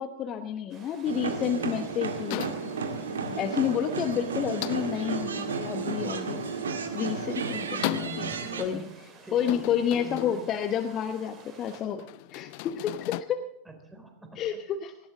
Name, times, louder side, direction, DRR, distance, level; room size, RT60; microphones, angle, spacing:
voice 1, 0.0-2.5 3.4-6.4 6.9-8.3 8.6-8.9 9.3-12.0 12.3-13.4 14.4-14.9, left 9 dB, 30° left, 8 dB, 1.0 m, -30 dB
sound 1, 0.7-11.8, right 4 dB, 30° right, 4.2 m, -53 dB
sound 2, 1.1-8.6, right 5 dB, 65° right, 1.8 m, -33 dB
sound 3, 2.3-13.2, left 18 dB, 45° left, 0.6 m, -39 dB
voice 2, 7.7-8.9 9.2-9.6 10.0-10.5 13.7-14.6, right 3 dB, 10° right, 4 dB, 3.9 m, -45 dB
18.0 x 16.0 x 3.7 m, 0.87 s
figure-of-eight pair, 90°, 0 cm